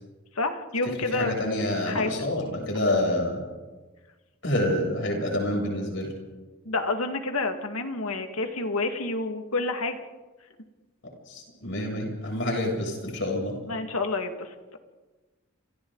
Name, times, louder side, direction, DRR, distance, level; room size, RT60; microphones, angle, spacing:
voice 1, 0.4-1.3 1.9-2.1 6.6-10.0 13.7-14.8, left 3 dB, 85° left, 5 dB, 2.1 m, -29 dB
voice 2, 1.1-3.4 4.4-6.1 11.3-13.5, left 1 dB, 55° left, 0 dB, 7.7 m, -27 dB
30.0 x 28.0 x 4.0 m, 1.3 s
head